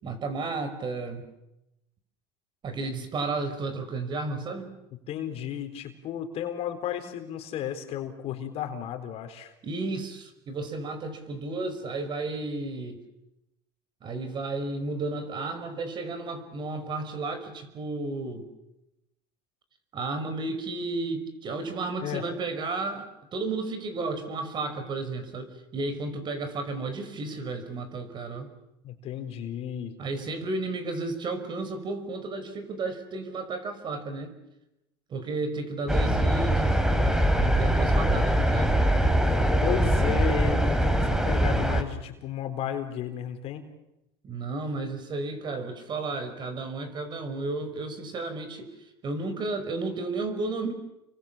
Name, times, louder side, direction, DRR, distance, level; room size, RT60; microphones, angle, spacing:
voice 1, 0.0-1.3 2.6-4.8 9.6-13.0 14.0-18.4 19.9-28.5 30.0-34.4 35.1-39.0 44.2-48.7 49.0-50.7, right 3 dB, 35° right, 9 dB, 5.4 m, -33 dB
voice 2, 5.1-9.5 22.0-22.2 28.8-29.9 39.6-43.6, left 10 dB, 50° left, 6 dB, 4.1 m, -33 dB
sound 1, 35.9-41.8, right 1 dB, 5° right, 3.1 m, -23 dB
30.0 x 23.5 x 7.5 m, 0.90 s
supercardioid pair, 115°, 13 cm